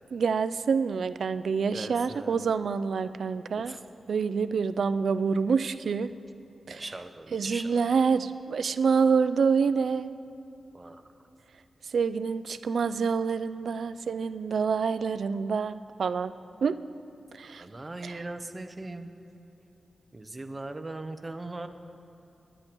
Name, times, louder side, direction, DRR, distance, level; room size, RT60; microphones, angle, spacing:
voice 1, 0.1-3.8 4.1-6.1 6.7-7.0 7.3-10.1 11.8-16.3 16.6-16.8 17.3-17.6 18.0-18.3, right 5 dB, 70° right, 13 dB, 0.3 m, -27 dB
voice 2, 1.7-2.4 3.7-3.8 6.7-7.7 10.7-11.0 17.6-19.1 20.1-21.7, right 2 dB, 20° right, 8 dB, 0.6 m, -39 dB
19.5 x 10.0 x 3.0 m, 2.8 s
wide cardioid pair, 145°, 0 cm